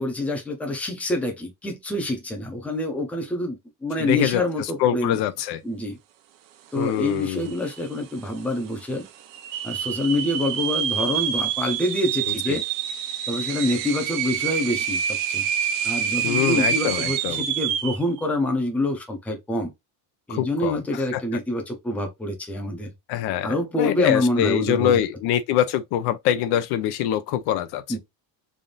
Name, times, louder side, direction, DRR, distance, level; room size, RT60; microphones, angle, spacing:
voice 1, 0.0-5.2 5.6-6.0 6.7-9.1 9.6-12.6 13.3-15.4 15.8-19.7 20.3-22.9 23.4-25.0 27.9-28.0, left 1 dB, 5° left, 0.6 m, -26 dB
voice 2, 4.0-5.6 6.8-7.5 12.5-12.6 16.2-17.4 20.3-21.2 23.1-28.0, left 11 dB, 60° left, 0.5 m, -24 dB
sound 1, 7.1-7.2 7.4-8.0 8.5-8.6 9.3-18.0, right 9 dB, 80° right, 0.8 m, -27 dB
3.5 x 2.6 x 3.8 m
cardioid pair, 180°, 44 cm